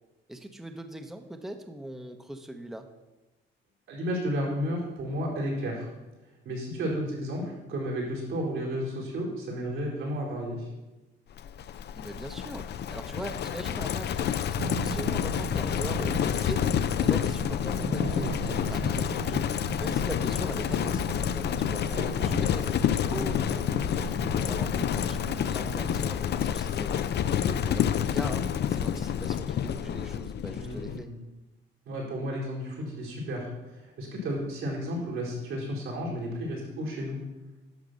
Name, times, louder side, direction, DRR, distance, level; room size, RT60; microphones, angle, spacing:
voice 1, 0.3-2.9 12.0-16.7 17.0-19.5 19.8-21.9 22.2-27.1 27.6-31.1, right 1 dB, ahead, 6 dB, 0.8 m, -40 dB
voice 2, 3.9-5.9 6.4-10.7 21.9-22.3 27.4-27.6 30.5-31.2 31.8-37.2, equal, 80° right, -4 dB, 4.5 m, -33 dB
Livestock farm animals working animals, 11.4-31.0, left 9 dB, 55° left, 0.5 m, -28 dB
sound 1, 14.6-26.1, right 8 dB, 60° right, 0.6 m, -39 dB
11.0 x 6.6 x 6.3 m, 1.1 s
cardioid pair, 90°, 20 cm